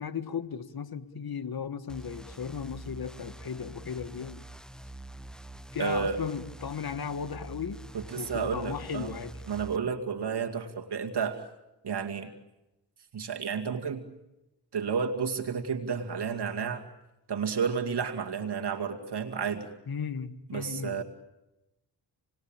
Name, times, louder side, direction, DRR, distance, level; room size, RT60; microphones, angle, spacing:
voice 1, 0.0-4.4 5.7-7.8 8.1-9.4 19.9-21.0, left 6 dB, 55° left, 11 dB, 1.6 m, -36 dB
sound 1, 1.9-9.8, right 2 dB, ahead, 1.1 m, -45 dB
voice 2, 5.8-6.2 7.9-9.1 9.5-11.4 11.8-12.3 13.1-14.0 14.7-16.8 17.3-19.7 20.5-21.0, right 6 dB, 60° right, 5 dB, 2.3 m, -31 dB
28.0 x 20.5 x 8.9 m, 0.96 s
cardioid pair, 55°, 44 cm